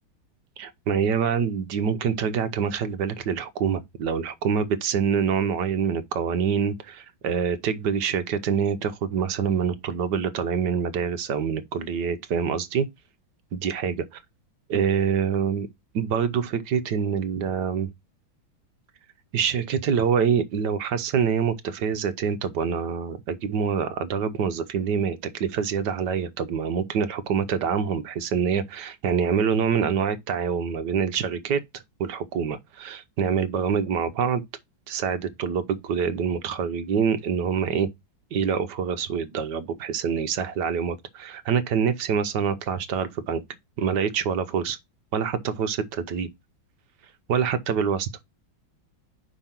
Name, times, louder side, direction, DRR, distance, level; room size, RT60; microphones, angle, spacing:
voice 1, 0.6-12.9 13.5-14.0 14.7-15.7 15.9-17.9 19.3-34.4 34.9-37.9 38.3-43.4 43.8-44.8 45.1-46.3 47.3-48.1, right 7 dB, 65° right, 1.3 m, -26 dB
5.5 x 5.1 x 5.8 m
omnidirectional pair, 2.2 m